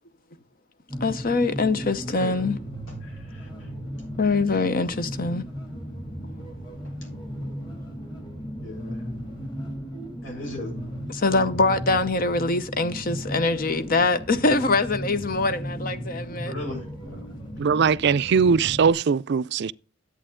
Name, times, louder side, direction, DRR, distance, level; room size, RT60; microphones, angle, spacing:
sound 1, 0.9-18.9, equal, 25° left, 2.7 m, -36 dB
voice 1, 1.0-2.6 4.2-5.4 11.1-16.5, left 3 dB, 50° left, 0.8 m, -23 dB
voice 2, 2.1-2.5 2.9-3.7 6.8-7.2 8.6-9.0 10.2-10.8 16.4-17.3, left 1 dB, 80° left, 6.8 m, -38 dB
voice 3, 17.6-19.7, right 6 dB, 60° right, 0.4 m, -20 dB
11.0 x 8.3 x 3.7 m
head